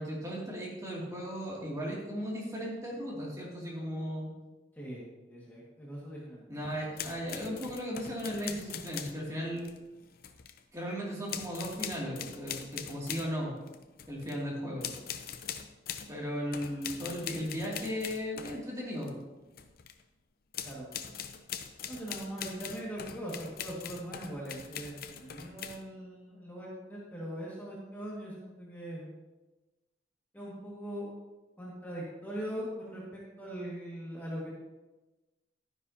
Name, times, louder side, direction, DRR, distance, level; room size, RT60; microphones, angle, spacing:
voice 1, 0.0-4.3 6.5-9.6 10.7-13.6 14.1-14.9 16.1-19.2 25.4-25.5, equal, 20° right, -4 dB, 2.5 m, -36 dB
voice 2, 4.8-6.4 20.6-20.9 21.9-29.1 30.3-31.1 31.6-34.5, equal, 10° left, -6 dB, 1.9 m, -41 dB
sound 1, 7.0-9.2 9.6-10.6 11.3-13.3 13.7-14.4 14.8-16.1 16.5-19.1 19.5-20.0 20.5-25.8, left 8 dB, 60° left, 0.6 m, -42 dB
11.5 x 10.0 x 2.8 m, 1.1 s
head